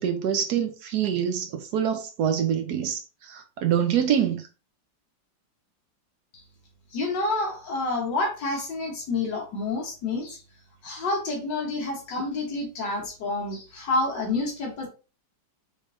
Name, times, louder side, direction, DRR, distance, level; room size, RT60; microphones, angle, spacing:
voice 1, 0.0-4.5, right 9 dB, 70° right, 1.1 m, -25 dB
voice 2, 6.9-10.4 10.8-14.9, left 2 dB, 70° left, 1.7 m, -28 dB
5.3 x 3.3 x 2.6 m
omnidirectional pair, 2.1 m